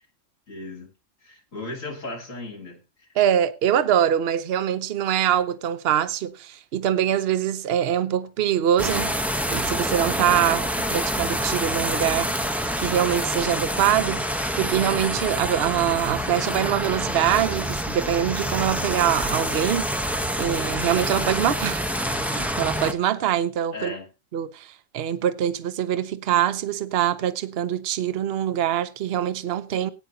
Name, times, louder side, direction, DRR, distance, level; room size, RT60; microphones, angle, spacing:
voice 1, 0.5-0.9 1.2-3.1 23.7-24.1, left 2 dB, 85° left, 3.1 m, -36 dB
voice 2, 3.2-9.1 9.5-12.3 12.8-14.2 14.6-19.9 20.4-21.8 22.3-23.9 24.3-24.7 24.9-29.9, right 10 dB, 55° right, 0.9 m, -24 dB
sound 1, 8.8-22.9, equal, ahead, 0.6 m, -27 dB
18.0 x 9.1 x 2.7 m
omnidirectional pair, 1.3 m